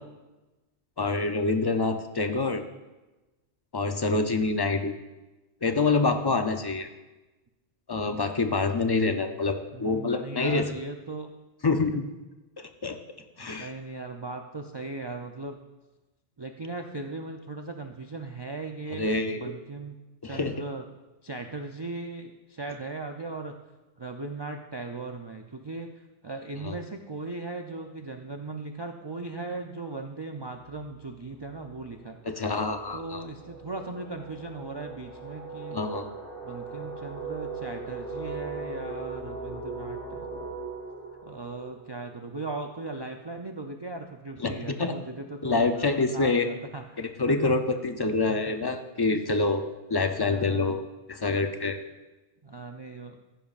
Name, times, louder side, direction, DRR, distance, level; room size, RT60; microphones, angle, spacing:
voice 1, 1.0-2.6 3.7-4.9 5.6-6.9 7.9-10.7 11.6-12.0 12.8-13.0 13.4-13.7 18.9-19.4 20.2-20.6 26.6-26.8 32.3-33.2 35.7-36.1 44.4-44.9 45.4-46.5 47.0-49.6 49.9-51.8, left 3 dB, 40° left, 7 dB, 0.3 m, -26 dB
voice 2, 9.7-11.3 11.9-12.0 13.4-15.6 16.4-20.0 20.2-20.8 21.2-23.5 24.0-25.9 26.2-32.2 32.9-35.8 36.4-40.6 41.2-47.0 47.3-47.5 48.3-48.7 50.2-50.8 52.4-53.2, right 3 dB, 45° right, 4 dB, 0.3 m, -38 dB
sound 1, 30.6-30.9 31.2-42.7, right 4 dB, 80° left, 4.8 m, -39 dB
14.5 x 10.5 x 2.4 m, 1.1 s
omnidirectional pair, 1.2 m